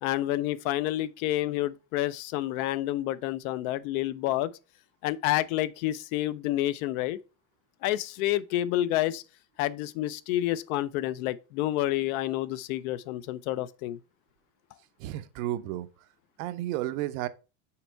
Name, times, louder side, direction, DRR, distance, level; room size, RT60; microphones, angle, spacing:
voice 1, 0.0-4.5 5.0-7.2 7.8-9.2 9.6-14.0, left 14 dB, 60° left, 0.5 m, -29 dB
voice 2, 15.0-15.9 16.4-17.3, right 14 dB, 55° right, 0.6 m, -32 dB
5.7 x 4.4 x 4.4 m
cardioid pair, 170°, 48 cm